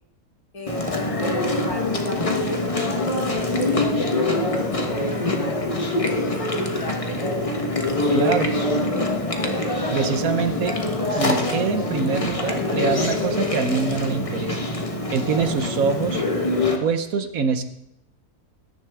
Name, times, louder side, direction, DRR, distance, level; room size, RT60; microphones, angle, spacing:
voice 1, 0.5-7.0 8.1-8.5, left 2 dB, 70° left, 0 dB, 2.8 m, -36 dB
Chewing mastication, 0.7-16.8, left 2 dB, 25° left, 1.2 m, -24 dB
voice 2, 8.1-8.5 9.9-10.8 11.1-14.7 15.1-16.2 16.8-17.6, right 5 dB, 65° right, 9 dB, 1.3 m, -24 dB
20.0 x 10.5 x 3.5 m, 0.77 s
omnidirectional pair, 1.6 m